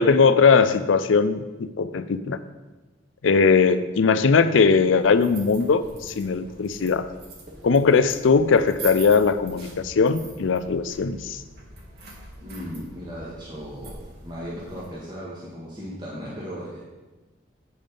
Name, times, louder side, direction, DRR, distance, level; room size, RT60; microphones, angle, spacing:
voice 1, 0.0-2.4 3.2-7.1 7.6-11.4, left 5 dB, 80° left, 12 dB, 0.5 m, -20 dB
sound 1, 4.8-14.9, right 3 dB, 55° right, 1.8 m, -43 dB
voice 2, 12.4-14.0 14.2-16.8, equal, 25° right, -7 dB, 1.5 m, -36 dB
8.5 x 5.2 x 5.3 m, 1.2 s
head